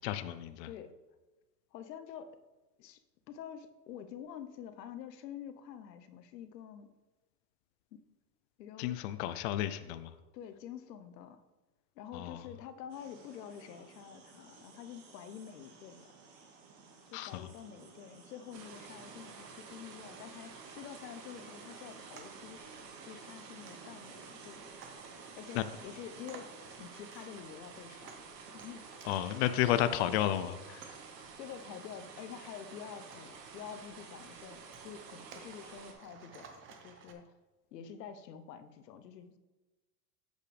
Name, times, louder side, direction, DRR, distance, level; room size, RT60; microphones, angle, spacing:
voice 1, 0.0-0.7 8.8-10.1 12.1-12.5 17.1-17.5 25.5-25.6 29.0-31.0, left 12 dB, 45° left, 11 dB, 0.4 m, -32 dB
voice 2, 0.6-1.0 1.7-2.4 2.8-3.0 3.3-6.9 7.9-8.0 8.6-9.0 10.3-11.4 12.0-16.1 17.1-24.6 25.4-28.9 31.3-36.5 36.8-37.3 37.7-39.4, left 8 dB, 85° left, 10 dB, 0.9 m, -48 dB
sound 1, 12.9-26.8, right 4 dB, 45° right, 1.8 m, -57 dB
sound 2, 18.5-35.9, right 5 dB, 75° right, 1.7 m, -51 dB
sound 3, 22.1-37.1, right 5 dB, 25° right, 0.8 m, -58 dB
8.2 x 6.7 x 3.3 m, 1.1 s
supercardioid pair, 140°, 48 cm